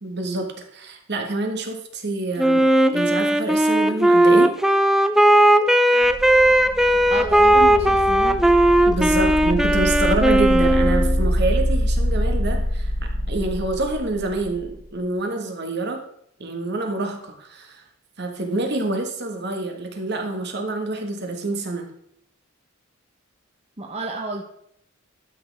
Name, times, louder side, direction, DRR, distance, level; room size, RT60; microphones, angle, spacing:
voice 1, 0.0-4.5 8.9-16.0 16.4-17.8 18.2-21.9, right 2 dB, 55° right, 4 dB, 1.6 m, -27 dB
Wind instrument woodwind instrument, 2.4-11.2, right 1 dB, ahead, 0.4 m, -17 dB
sound 1, 6.0-14.8, equal, 55° left, 1.4 m, -25 dB
voice 2, 7.1-8.4 9.2-9.3 23.8-24.4, right 3 dB, 30° right, 1 dB, 0.9 m, -31 dB
12.0 x 6.4 x 3.5 m, 0.72 s
head